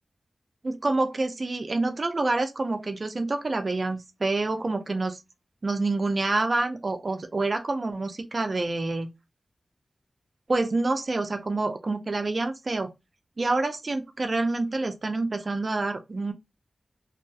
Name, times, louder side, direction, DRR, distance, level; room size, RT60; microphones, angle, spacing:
voice 1, 0.6-5.2 5.6-9.1 10.5-12.9 13.4-16.3, right 2 dB, 50° right, 0.4 m, -27 dB
2.6 x 2.3 x 2.3 m
wide cardioid pair, 70°, 0 cm